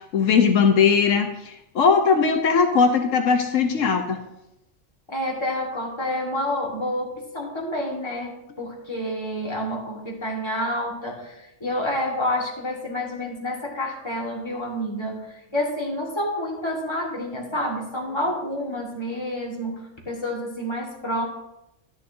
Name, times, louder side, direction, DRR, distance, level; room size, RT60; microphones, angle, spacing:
voice 1, 0.1-4.2, left 5 dB, 80° left, 5 dB, 1.2 m, -19 dB
voice 2, 5.1-21.2, left 1 dB, 20° left, -2 dB, 1.9 m, -29 dB
11.0 x 10.5 x 2.7 m, 0.86 s
omnidirectional pair, 1.3 m